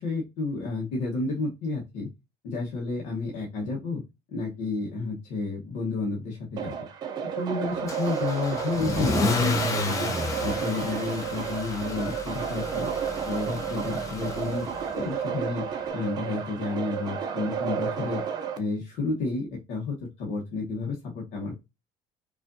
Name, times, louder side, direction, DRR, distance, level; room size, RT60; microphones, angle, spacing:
voice 1, 0.0-2.1 2.4-4.0 4.3-6.7 7.4-10.1 10.4-12.9 13.2-14.7 14.9-18.2 18.6-21.6, left 3 dB, 70° left, -2 dB, 1.1 m, -31 dB
sound 1, 6.6-18.6, right 7 dB, 35° right, 0.5 m, -32 dB
Car / Engine starting / Accelerating revving vroom, 7.9-15.0, left 3 dB, 25° left, 0.6 m, -31 dB
4.9 x 2.5 x 2.6 m, 0.25 s
cardioid pair, 170°, 13 cm